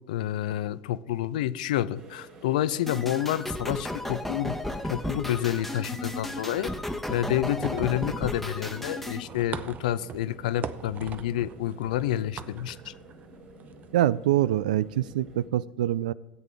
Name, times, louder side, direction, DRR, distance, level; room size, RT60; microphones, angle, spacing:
voice 1, 0.1-4.6 4.8-6.7 7.1-12.9, left 12 dB, 75° left, 0.4 m, -29 dB
sound 1, 1.9-15.5, right 3 dB, 60° right, 3.4 m, -50 dB
sound 2, 2.9-9.2, left 1 dB, 5° left, 1.0 m, -34 dB
sound 3, 6.6-13.9, right 7 dB, 40° right, 0.6 m, -43 dB
voice 2, 13.9-16.1, right 13 dB, 75° right, 0.3 m, -25 dB
17.0 x 8.2 x 3.5 m
hypercardioid pair, 75°, 4 cm